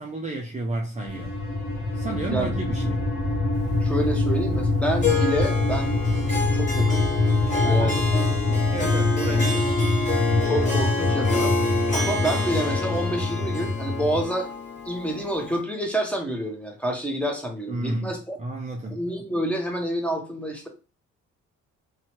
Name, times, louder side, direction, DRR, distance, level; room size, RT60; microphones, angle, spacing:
voice 1, 0.0-1.3 1.9-3.0 7.6-8.0 8.7-9.7 17.7-19.0, right 2 dB, 25° right, 0.5 m, -31 dB
sound 1, 0.9-14.2, left 2 dB, 80° left, 0.9 m, -24 dB
voice 2, 3.8-5.9 6.3-7.1 7.6-8.6 9.3-9.5 10.4-11.5 11.9-14.5 14.8-18.4 18.9-20.7, right 1 dB, 5° left, 0.8 m, -28 dB
Harp, 5.0-15.6, left 3 dB, 25° left, 1.1 m, -28 dB
2.7 x 2.2 x 2.9 m
cardioid pair, 90°, 30 cm